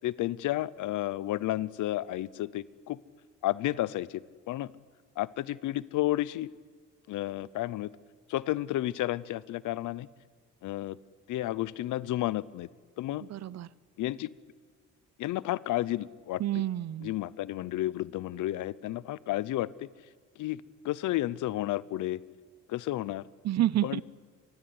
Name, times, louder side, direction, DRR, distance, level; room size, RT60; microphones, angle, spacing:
voice 1, 0.0-3.0 3.4-4.7 5.2-6.5 7.1-7.9 8.3-10.1 10.6-11.0 11.3-12.7 13.0-13.2 14.0-14.3 15.2-16.4 17.0-19.9 20.4-22.2 22.7-23.3 23.8-24.0, left 15 dB, 85° left, 20 dB, 0.9 m, -32 dB
voice 2, 13.2-13.7 16.4-17.1 23.4-24.0, right 13 dB, 60° right, 21 dB, 0.8 m, -29 dB
25.5 x 21.0 x 9.7 m, 1.5 s
cardioid pair, 90°, 30 cm